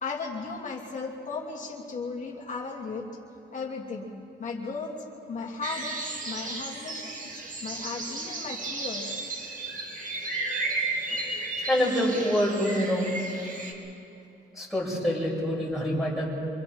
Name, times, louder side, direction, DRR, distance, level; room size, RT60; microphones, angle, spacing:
voice 1, 0.0-3.1 3.5-4.1 4.4-9.1, left 4 dB, 40° left, -2 dB, 2.8 m, -36 dB
sound 1, 5.6-13.7, right 2 dB, 45° right, 2.5 m, -34 dB
voice 2, 11.7-13.1 14.5-16.2, equal, ahead, -5 dB, 6.9 m, -26 dB
26.5 x 24.5 x 4.4 m, 2.8 s
cardioid pair, 135°, 19 cm